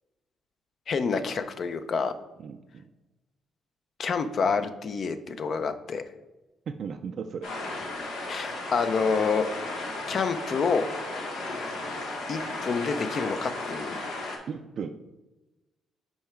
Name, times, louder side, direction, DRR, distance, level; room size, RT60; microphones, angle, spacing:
voice 1, 0.9-2.1 4.0-6.0 8.3-9.5 10.1-10.9 12.3-14.0, left 5 dB, 50° left, 10 dB, 0.6 m, -28 dB
voice 2, 2.4-2.8 6.7-7.5 14.5-14.9, right 6 dB, 60° right, 6 dB, 0.3 m, -36 dB
sound 1, 7.4-14.4, left 2 dB, 90° left, 1.3 m, -34 dB
5.4 x 4.7 x 4.4 m, 1.1 s
cardioid pair, 90°, 0 cm